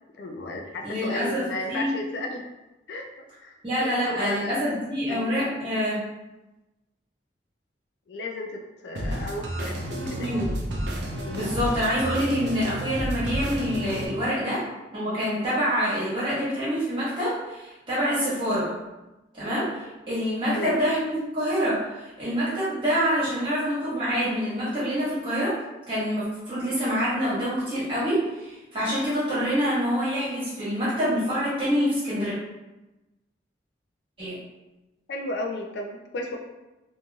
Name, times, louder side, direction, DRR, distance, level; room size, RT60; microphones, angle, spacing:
voice 1, 0.1-2.4 2.9-3.1 3.4-4.6 5.1-5.3 8.1-10.4 11.2-11.5 20.5-20.8 35.1-36.4, left 2 dB, 65° left, 2 dB, 0.4 m, -34 dB
voice 2, 0.8-1.9 3.6-6.0 9.9-10.5 11.3-14.7 14.9-18.7 19.3-25.6 25.9-32.3 34.2-34.4, equal, 30° right, -10 dB, 1.3 m, -26 dB
sound 1, 9.0-14.1, equal, 70° right, 0.5 m, -31 dB
3.0 x 2.6 x 2.3 m, 1.0 s
head